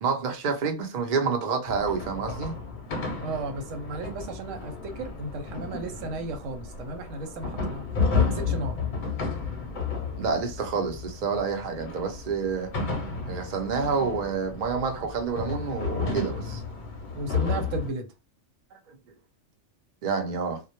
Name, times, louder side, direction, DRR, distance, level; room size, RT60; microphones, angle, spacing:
voice 1, 0.0-2.5 10.2-12.7 13.3-16.6 20.0-20.6, right 5 dB, 50° right, 0.6 m, -28 dB
sound 1, 1.7-17.9, left 4 dB, 50° left, 0.7 m, -32 dB
voice 2, 3.2-7.8 8.1-8.8 17.1-18.1, right 2 dB, 85° right, 1.0 m, -34 dB
2.2 x 2.1 x 2.8 m
omnidirectional pair, 1.3 m